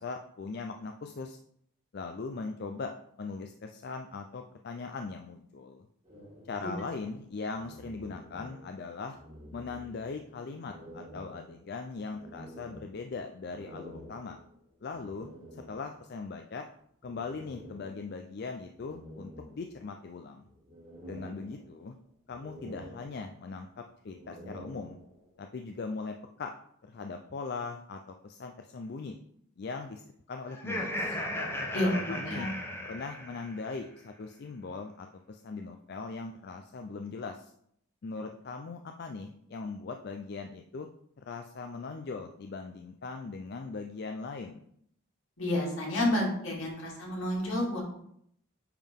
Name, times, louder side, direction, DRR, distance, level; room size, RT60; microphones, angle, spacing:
voice 1, 0.0-1.4 1.9-2.9 3.2-5.9 6.4-9.2 9.5-14.4 14.8-16.7 17.0-20.5 21.1-21.9 22.3-25.0 25.4-26.5 26.8-29.2 29.6-30.0 30.3-31.2 31.8-32.5 32.9-37.5 38.0-40.9 41.2-44.6, left 4 dB, 50° left, 5 dB, 0.4 m, -40 dB
sound 1, 6.0-8.9 9.1-10.2 10.6-16.1 17.0-18.3 18.7-20.1 20.5-22.0 22.3-23.6 24.0-25.4, equal, 30° right, 2.2 m, -50 dB
Laughter, 30.5-33.7, left 1 dB, 10° left, 0.9 m, -36 dB
voice 2, 31.7-32.5 45.4-47.8, left 1 dB, 75° left, -3 dB, 2.4 m, -30 dB
9.0 x 3.7 x 3.6 m, 0.71 s
head